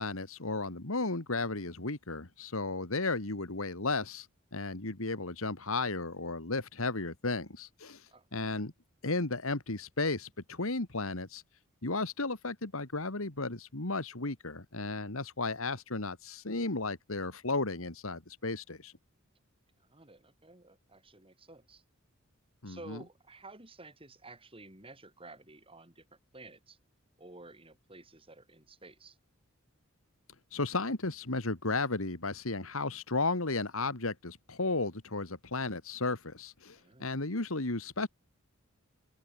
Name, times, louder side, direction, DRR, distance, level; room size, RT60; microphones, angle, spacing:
voice 1, 0.0-4.3 4.5-8.7 9.0-11.4 11.8-18.9 22.6-23.0 30.5-38.1, left 3 dB, 75° left, 2.3 m, -34 dB
voice 2, 19.8-21.8 22.7-26.8 27.2-29.2 36.7-37.1, right 2 dB, 25° right, 7.5 m, -52 dB
open air
head